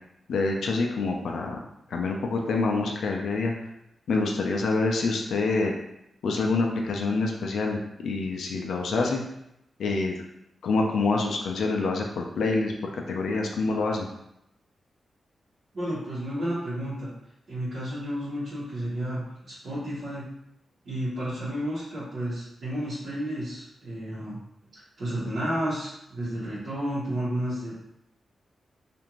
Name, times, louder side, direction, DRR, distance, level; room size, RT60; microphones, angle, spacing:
voice 1, 0.3-1.6 1.9-3.5 4.1-5.7 6.2-9.2 9.8-10.2 10.6-12.7 13.1-14.1, left 3 dB, 85° left, 1 dB, 0.4 m, -26 dB
voice 2, 15.7-17.1 17.5-20.3 20.8-24.4 24.7-27.7, equal, 55° right, -13 dB, 1.0 m, -31 dB
2.5 x 2.5 x 3.0 m, 0.81 s
wide cardioid pair, 150°, 0 cm